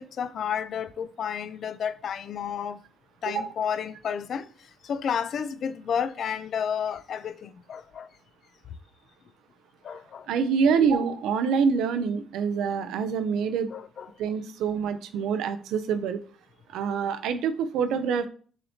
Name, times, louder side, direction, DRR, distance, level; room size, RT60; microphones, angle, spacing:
voice 1, 0.0-2.8 3.2-8.1 9.8-10.3 13.7-14.1, left 7 dB, 60° left, 0.3 m, -31 dB
voice 2, 10.3-13.7 14.2-16.2 16.7-18.3, right 6 dB, 85° right, 0.4 m, -26 dB
6.4 x 2.8 x 2.8 m
cardioid pair, 90°, 0 cm